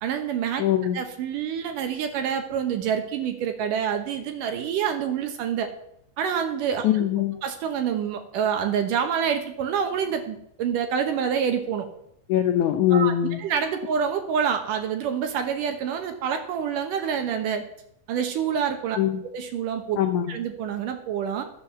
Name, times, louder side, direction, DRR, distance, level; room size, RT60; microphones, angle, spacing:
voice 1, 0.0-0.6 0.9-5.7 6.2-7.1 7.4-11.9 12.9-17.6 18.1-19.0 19.2-20.0 20.3-21.4, right 7 dB, 70° right, 6 dB, 2.3 m, -27 dB
voice 2, 0.6-1.0 6.8-7.4 12.3-13.4 19.0-19.2 20.0-20.4, left 11 dB, 80° left, 6 dB, 1.7 m, -22 dB
13.0 x 7.3 x 6.7 m, 0.74 s
omnidirectional pair, 4.4 m